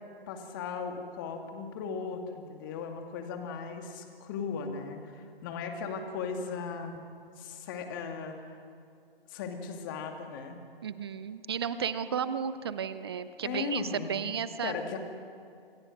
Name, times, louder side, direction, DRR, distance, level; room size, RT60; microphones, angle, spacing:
voice 1, 0.3-7.0 7.4-8.5 9.3-10.6 13.4-15.0, left 5 dB, 20° left, 5 dB, 2.3 m, -37 dB
voice 2, 10.8-14.7, right 7 dB, 25° right, 13 dB, 0.8 m, -33 dB
27.0 x 26.0 x 6.5 m, 2.4 s
figure-of-eight pair, 145°, 30 cm